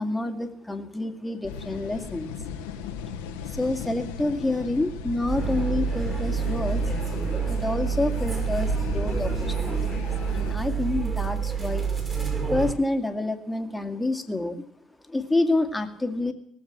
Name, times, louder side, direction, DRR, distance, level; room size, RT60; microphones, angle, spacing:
voice 1, 0.0-2.4 3.5-6.8 7.5-11.9 12.5-14.6 15.1-16.3, left 2 dB, 10° left, 7 dB, 2.1 m, -28 dB
sound 1, 1.4-10.6, left 6 dB, 75° left, 1.2 m, -36 dB
sound 2, 5.3-12.7, right 6 dB, 25° right, 5.6 m, -28 dB
19.0 x 7.4 x 7.4 m, 0.71 s
hypercardioid pair, 60°, 0 cm